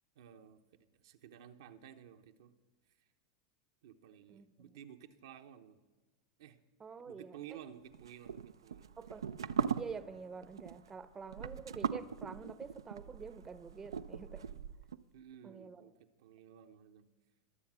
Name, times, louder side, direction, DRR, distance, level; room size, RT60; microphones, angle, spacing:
voice 1, 0.1-2.5 3.8-5.8 6.4-6.6 7.1-9.2 15.1-17.1, right 10 dB, 75° right, 0.9 m, -54 dB
voice 2, 6.8-7.6 9.0-9.3 9.8-14.5 15.4-15.8, right 5 dB, 20° right, 0.7 m, -47 dB
sound 1, 7.9-15.0, right 7 dB, 90° right, 0.4 m, -40 dB
21.0 x 7.2 x 6.2 m
hypercardioid pair, 95°, 2 cm